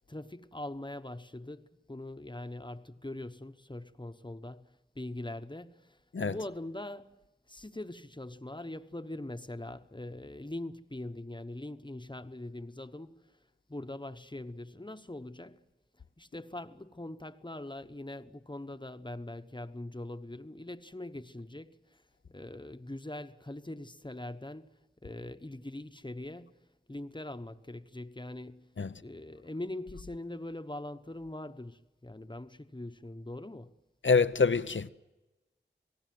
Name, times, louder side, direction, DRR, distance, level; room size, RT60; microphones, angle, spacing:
voice 1, 0.1-7.1 7.5-13.2 13.7-15.6 16.2-22.0 22.3-24.7 25.0-26.6 26.9-28.7 29.0-33.7, left 1 dB, 25° left, 1.1 m, -42 dB
voice 2, 34.0-34.9, left 5 dB, 75° left, 0.7 m, -26 dB
28.0 x 18.5 x 7.7 m
wide cardioid pair, 40°, 20 cm